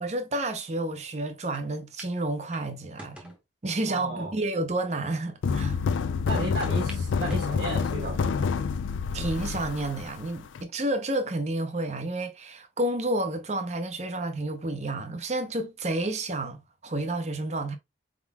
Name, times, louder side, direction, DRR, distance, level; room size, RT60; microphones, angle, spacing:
voice 1, 0.0-3.3 3.6-5.8 9.1-17.8, right 2 dB, 35° right, 0.7 m, -30 dB
sound 1, 1.5-1.6 2.0-2.1 2.5-3.4 4.1-4.2 4.9-5.0 5.3-5.4 6.6-7.0 7.3-8.0 8.6-9.0 9.6-9.7 10.8-11.2, equal, 5° right, 0.9 m, -46 dB
voice 2, 3.9-4.3 6.2-8.5, right 2 dB, 70° right, 1.6 m, -34 dB
sound 2, 5.4-10.6, left 5 dB, 85° left, 0.4 m, -28 dB
4.6 x 3.7 x 2.2 m
head